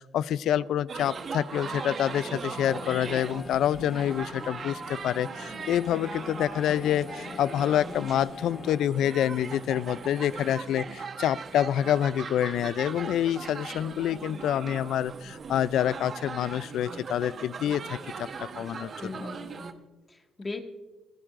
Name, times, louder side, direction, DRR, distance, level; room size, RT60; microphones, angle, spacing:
voice 1, 0.0-18.9, left 10 dB, 75° left, 19 dB, 0.4 m, -27 dB
sound 1, 0.9-19.7, right 5 dB, 50° right, 1.0 m, -39 dB
sound 2, 2.6-8.9, left 4 dB, 40° left, 0.9 m, -44 dB
voice 2, 19.0-20.6, left 3 dB, 25° left, 4 dB, 1.7 m, -39 dB
24.5 x 13.0 x 2.5 m, 1.2 s
cardioid pair, 90°, 0 cm